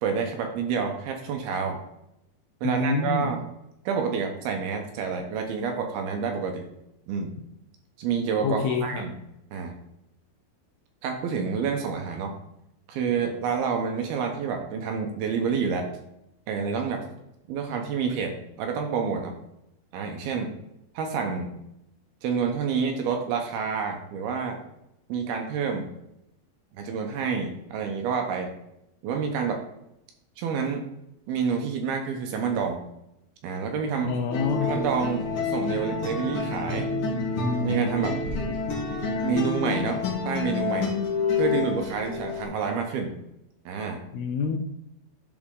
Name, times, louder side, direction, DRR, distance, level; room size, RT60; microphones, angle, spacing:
voice 1, 0.0-1.8 2.6-3.4 3.9-6.7 7.1-7.3 8.0-9.2 9.5-9.7 11.0-12.4 12.9-15.9 16.5-17.1 17.5-19.4 19.9-20.5 21.0-21.5 22.2-24.6 25.1-25.9 26.7-28.5 29.0-29.6 30.4-30.8 31.3-32.8 33.4-34.2 34.6-36.9 37.6-38.2 39.2-40.9 41.4-43.1 43.7-44.0, right 6 dB, 75° right, 4 dB, 2.6 m, -28 dB
voice 2, 2.6-3.3 8.4-9.0 34.0-34.8 44.1-44.6, left 4 dB, 80° left, 4 dB, 2.3 m, -26 dB
sound 1, 34.3-42.4, left 4 dB, 55° left, 1.5 m, -28 dB
12.5 x 4.3 x 3.7 m, 0.82 s
omnidirectional pair, 4.9 m